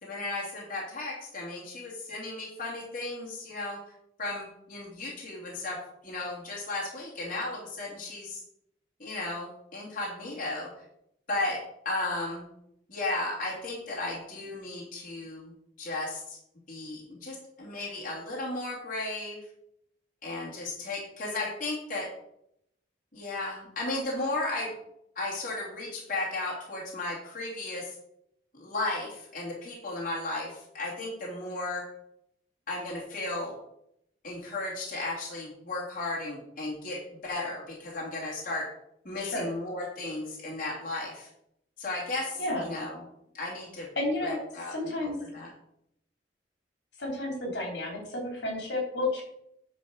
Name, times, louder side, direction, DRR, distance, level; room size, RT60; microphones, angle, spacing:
voice 1, 0.0-3.8 4.2-5.8 6.0-8.4 9.0-10.7 11.3-11.6 11.8-12.5 12.9-15.5 15.8-16.4 16.7-19.4 20.2-22.1 23.1-24.7 25.2-27.9 28.5-31.8 32.7-33.5 34.2-38.7 39.0-41.3 41.8-43.0 43.3-43.9 44.2-45.5, left 2 dB, 45° left, -5 dB, 2.7 m, -35 dB
voice 2, 39.2-39.5 42.3-42.7 43.9-44.4 44.7-45.2 47.0-49.2, left 2 dB, 75° left, 0 dB, 3.6 m, -31 dB
10.0 x 4.4 x 6.4 m, 0.77 s
head